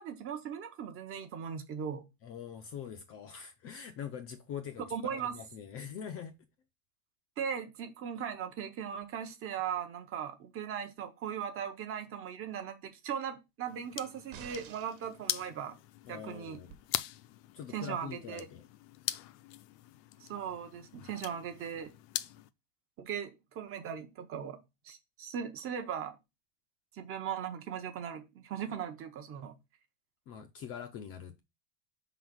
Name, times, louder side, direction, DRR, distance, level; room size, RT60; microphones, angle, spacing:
voice 1, 0.0-2.0 4.9-5.4 7.4-15.8 16.1-16.6 17.7-18.5 20.2-21.9 23.0-24.6 24.8-26.2 26.9-29.6, right 8 dB, 30° right, 0.7 m, -38 dB
voice 2, 2.2-6.4 16.1-16.7 17.5-18.6 30.3-31.4, left 8 dB, 30° left, 0.5 m, -43 dB
sound 1, 13.7-22.5, left 14 dB, 75° left, 0.7 m, -42 dB
sound 2, 14.3-15.1 16.7-16.8, right 9 dB, 70° right, 1.3 m, -49 dB
5.6 x 4.0 x 5.9 m
cardioid pair, 170°, 48 cm